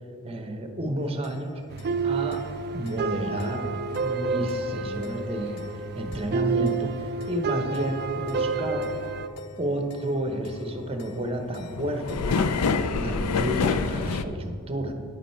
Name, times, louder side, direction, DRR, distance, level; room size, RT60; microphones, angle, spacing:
voice 1, 0.2-1.6 2.0-2.4 2.7-5.6 5.9-8.9 9.6-14.9, right 1 dB, 25° right, 5 dB, 0.9 m, -31 dB
sound 1, 1.2-1.3 1.8-1.9 2.3-2.4 2.9-3.0 3.4-3.5 3.9-4.0 4.5-4.6 5.0-5.1 5.6-5.7 6.1-6.2 6.7-6.8 7.2-7.3 7.7-7.8 8.3-8.4 8.8-9.1 9.4-9.5 9.8-14.2, left 4 dB, 90° left, 0.5 m, -28 dB
sound 2, 1.7-9.3, right 4 dB, 45° right, 0.4 m, -29 dB
10.0 x 8.9 x 4.4 m, 2.5 s
head